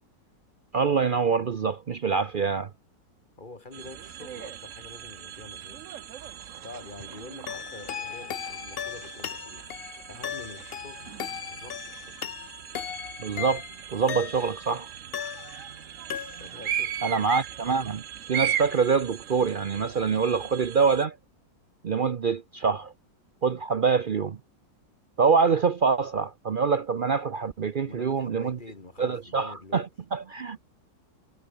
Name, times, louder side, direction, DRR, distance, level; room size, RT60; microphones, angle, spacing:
voice 1, 0.7-2.7 13.2-13.6 13.9-14.9 17.0-18.0 18.3-21.2 21.8-22.9 23.4-24.4 25.2-28.6 29.0-30.6, right 5 dB, 85° right, 0.4 m, -25 dB
voice 2, 3.4-12.4 16.4-17.2 27.8-29.9, left 2 dB, 25° left, 2.5 m, -47 dB
sound 1, 3.7-21.1, right 10 dB, 55° right, 1.0 m, -38 dB
Brass instrument, 5.6-9.8, equal, 10° right, 6.5 m, -59 dB
sound 2, 7.5-14.7 15.1-15.8 16.1-16.7, left 9 dB, 65° left, 0.6 m, -37 dB
omnidirectional pair, 2.0 m